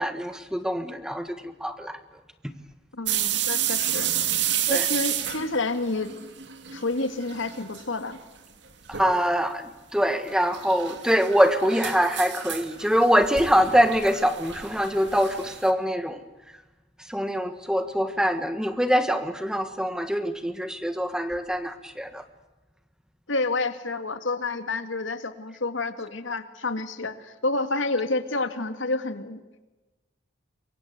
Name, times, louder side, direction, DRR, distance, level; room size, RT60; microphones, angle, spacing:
voice 1, 0.0-2.0 4.7-4.9 8.9-16.2 17.1-22.2, equal, 5° right, 9 dB, 1.5 m, -24 dB
voice 2, 2.9-4.1 4.7-6.1 6.7-8.2 23.3-29.4, left 3 dB, 80° left, 9 dB, 2.2 m, -29 dB
sound 1, 3.1-6.9 7.1-7.8 8.1-8.2 8.9-9.3 10.3-15.7, right 11 dB, 65° right, 2.5 m, -30 dB
27.5 x 23.5 x 8.2 m, 1.1 s
head